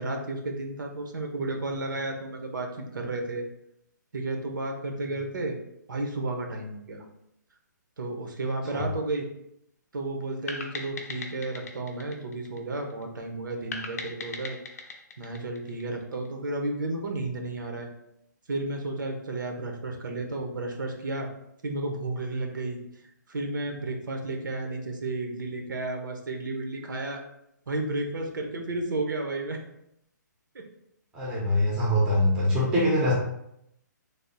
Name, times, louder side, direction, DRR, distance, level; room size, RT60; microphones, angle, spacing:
voice 1, 0.0-3.4 4.1-5.6 5.9-7.0 8.0-9.3 9.9-14.6 15.2-17.9 18.5-21.3 21.6-22.8 23.3-27.2 27.7-29.6 30.5-30.6, right 2 dB, 85° right, 3 dB, 0.7 m, -32 dB
sound 1, 10.5-13.0 13.7-16.3, left 3 dB, 50° left, 0.5 m, -39 dB
voice 2, 31.1-33.1, left 1 dB, 5° right, -5 dB, 0.5 m, -23 dB
3.4 x 2.0 x 3.9 m, 0.79 s
hypercardioid pair, 170°, 10 cm